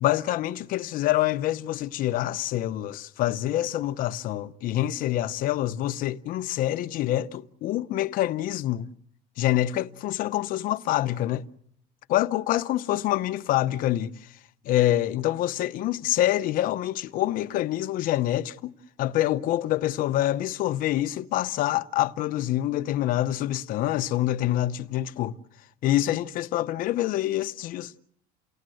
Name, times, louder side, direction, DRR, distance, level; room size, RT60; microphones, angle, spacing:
voice 1, 0.0-8.9 9.4-11.5 12.1-14.3 14.6-18.7 19.0-25.4 25.8-27.9, left 14 dB, 55° left, 0.9 m, -26 dB
29.5 x 18.5 x 7.8 m
cardioid pair, 135°, 18 cm